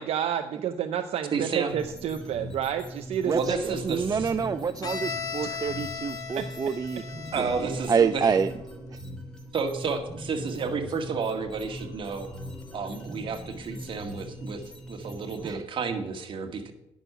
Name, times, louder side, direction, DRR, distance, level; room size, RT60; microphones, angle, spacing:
voice 1, 0.0-3.8 5.4-5.6 6.3-6.4, right 9 dB, 65° right, 8 dB, 0.7 m, -30 dB
voice 2, 1.3-1.7 3.3-4.3 7.3-8.4 9.5-12.3 12.7-14.6 14.9-16.7, right 5 dB, 50° right, 5 dB, 1.9 m, -31 dB
sound 1, 1.7-15.5, equal, 5° left, 2.8 m, -41 dB
voice 3, 3.8-7.0 7.4-8.5 15.4-15.6, right 6 dB, 35° right, 11 dB, 0.5 m, -27 dB
Bowed string instrument, 4.8-8.6, left 5 dB, 35° left, 1.5 m, -37 dB
10.0 x 6.4 x 6.8 m, 0.85 s
cardioid pair, 85°, 11 cm